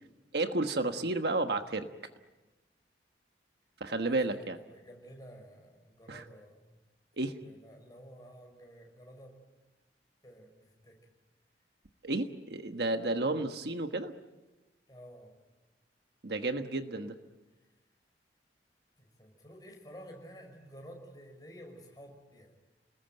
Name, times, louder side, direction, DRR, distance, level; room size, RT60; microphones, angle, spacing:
voice 1, 0.3-1.9 3.8-4.6 6.1-6.2 7.2-7.4 12.0-14.1 16.2-17.2, right 2 dB, 60° right, 7 dB, 1.3 m, -32 dB
voice 2, 4.0-6.7 7.2-9.4 10.2-11.0 14.9-15.3 19.0-22.5, equal, 20° left, 2 dB, 5.9 m, -52 dB
29.5 x 20.0 x 9.2 m, 1.2 s
head